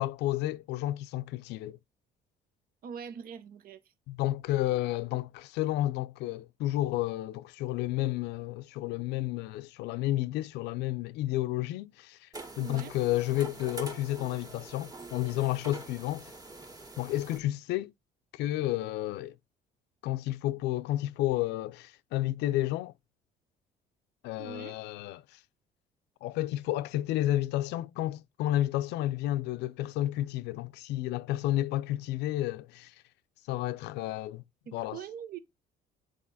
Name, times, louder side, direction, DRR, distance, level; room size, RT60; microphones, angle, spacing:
voice 1, 0.0-1.8 4.1-12.3 12.6-16.3 17.0-17.9 18.3-19.4 20.0-22.9 24.2-25.2 26.2-32.9 33.5-34.4 34.7-35.0, left 15 dB, 85° left, 0.5 m, -31 dB
voice 2, 2.8-3.8 12.6-12.9 24.4-24.8 34.7-35.4, right 7 dB, 60° right, 0.9 m, -42 dB
sound 1, 12.3-17.4, right 2 dB, 20° right, 1.7 m, -45 dB
6.3 x 5.0 x 4.0 m
cardioid pair, 110°, 17 cm